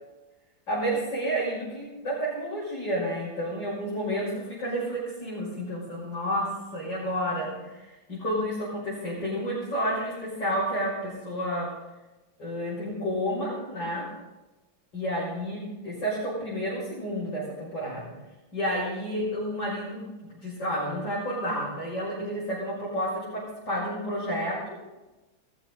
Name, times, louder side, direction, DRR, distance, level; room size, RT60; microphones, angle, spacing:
voice 1, 0.7-11.8 12.4-14.1 14.9-18.1 18.5-20.1 20.4-25.0, equal, 70° left, -8 dB, 6.9 m, -30 dB
20.5 x 14.5 x 3.9 m, 1.1 s
omnidirectional pair, 2.0 m